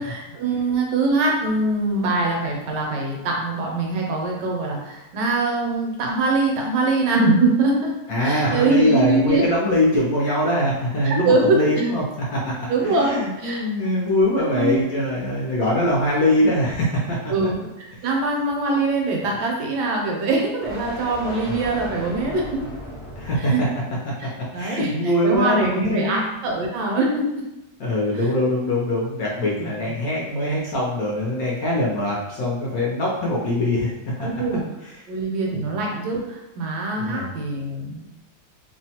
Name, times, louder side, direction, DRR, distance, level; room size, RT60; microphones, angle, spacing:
voice 1, 0.0-7.9 8.2-9.4 11.0-11.9 12.7-13.6 14.5-14.8 17.3-22.4 23.4-23.6 24.2-27.2 28.1-28.3 34.2-34.6 35.1-38.1, right 3 dB, 75° right, 0 dB, 1.2 m, -23 dB
voice 2, 8.1-12.0 12.3-12.5 12.8-17.3 21.5-21.6 23.2-23.5 24.5-26.3 27.8-33.9 34.2-34.3 35.5-35.7 37.0-37.3, left 1 dB, 70° left, -4 dB, 0.9 m, -22 dB
sound 1, 9.8-23.6, equal, 30° left, 0.4 m, -41 dB
3.0 x 2.1 x 2.7 m, 0.94 s
omnidirectional pair, 1.9 m